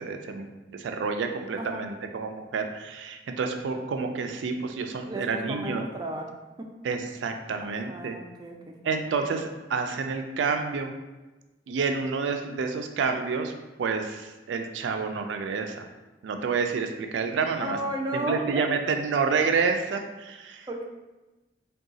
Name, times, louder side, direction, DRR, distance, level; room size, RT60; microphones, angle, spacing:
voice 1, 0.0-5.8 6.8-8.2 8.8-10.9 11.7-13.5 13.8-15.9 16.2-17.8 18.1-20.8, right 5 dB, 85° right, 5 dB, 0.4 m, -29 dB
voice 2, 1.6-2.0 5.1-6.3 6.6-6.7 7.6-8.8 17.6-18.7 20.7-20.8, right 1 dB, 25° right, 1 dB, 0.4 m, -34 dB
3.6 x 2.3 x 3.9 m, 1.1 s
head